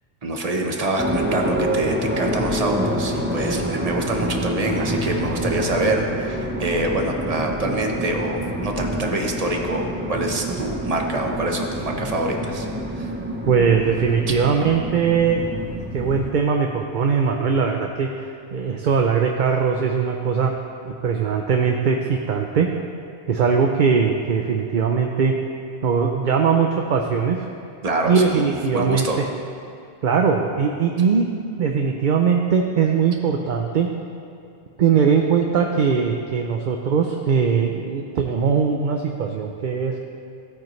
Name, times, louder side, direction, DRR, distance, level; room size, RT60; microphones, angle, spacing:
voice 1, 0.2-12.7 12.9-13.1 27.8-29.2, right 1 dB, 40° right, 2 dB, 1.1 m, -25 dB
sound 1, 1.0-16.3, right 1 dB, 10° right, 0.7 m, -27 dB
voice 2, 13.5-15.5 15.9-18.1 18.5-20.5 20.8-22.7 23.3-25.3 25.8-27.4 28.1-29.1 30.0-31.3 31.6-33.9 34.8-40.0, right 6 dB, 55° right, 2 dB, 0.7 m, -20 dB
16.0 x 8.9 x 3.2 m, 2.5 s
omnidirectional pair, 1.1 m